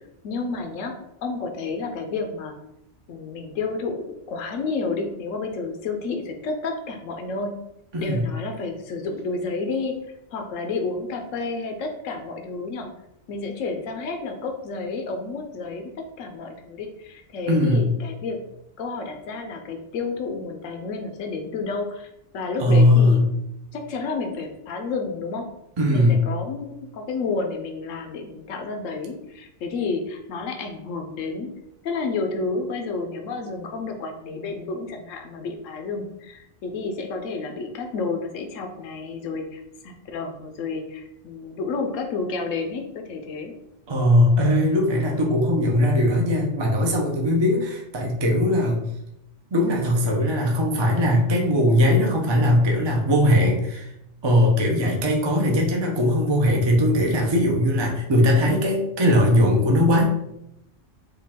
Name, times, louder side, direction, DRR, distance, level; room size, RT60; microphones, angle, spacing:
voice 1, 0.0-2.6 3.1-7.6 8.0-10.0 10.3-12.9 13.3-18.4 18.8-23.2 23.7-25.5 25.9-31.5 31.8-43.5, left 4 dB, 85° left, 4 dB, 1.1 m, -30 dB
voice 2, 7.9-8.3 17.5-17.9 22.6-23.3 25.8-26.2 43.9-48.8 49.5-53.9 54.2-60.1, left 1 dB, 30° right, 0 dB, 0.5 m, -19 dB
4.9 x 2.4 x 3.5 m, 0.81 s
omnidirectional pair, 1.3 m